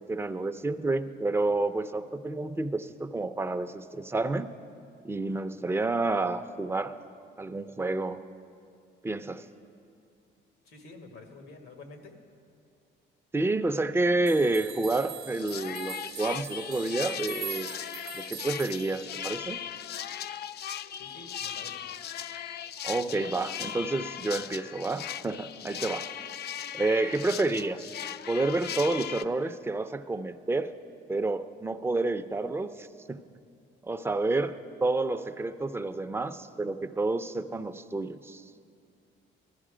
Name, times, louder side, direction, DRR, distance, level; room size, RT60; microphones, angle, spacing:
voice 1, 0.0-4.5 5.0-6.9 7.4-8.2 9.0-9.5 13.3-17.8 18.1-19.6 22.8-26.1 26.7-27.9 28.3-30.7 31.1-33.2 33.8-38.4, right 2 dB, 10° right, 8 dB, 0.5 m, -29 dB
voice 2, 10.6-12.1 20.9-21.8 23.0-23.3, left 3 dB, 90° left, 4 dB, 1.8 m, -48 dB
sound 1, 14.3-19.5, right 10 dB, 50° right, 0.9 m, -42 dB
sound 2, 14.9-15.1 15.3-29.2, left 9 dB, 55° left, 0.4 m, -38 dB
16.0 x 12.0 x 5.0 m, 2.4 s
cardioid pair, 95°, 21 cm